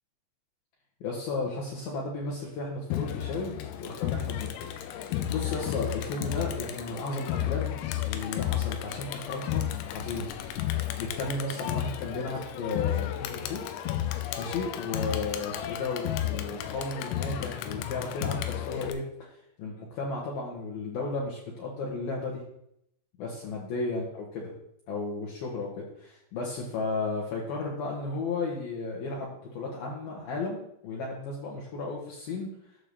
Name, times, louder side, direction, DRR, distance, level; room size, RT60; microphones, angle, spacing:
voice 1, 1.0-3.5 3.8-4.5 4.8-7.7 8.0-10.3 11.0-13.6 14.4-19.0 19.3-22.4 23.2-24.5 24.9-32.5, left 3 dB, 65° left, -3 dB, 2.7 m, -34 dB
Crowd, 2.9-18.9, left 12 dB, 85° left, 3.1 m, -33 dB
11.5 x 3.8 x 6.8 m, 0.75 s
omnidirectional pair, 5.4 m